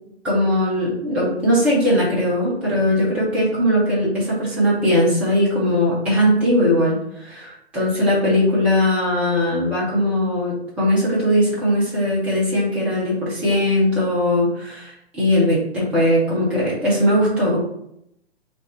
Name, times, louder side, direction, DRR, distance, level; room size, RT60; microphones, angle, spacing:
voice 1, 0.2-17.6, left 1 dB, 5° right, -7 dB, 0.5 m, -19 dB
3.3 x 2.5 x 3.8 m, 0.76 s
figure-of-eight pair, 125°, 32 cm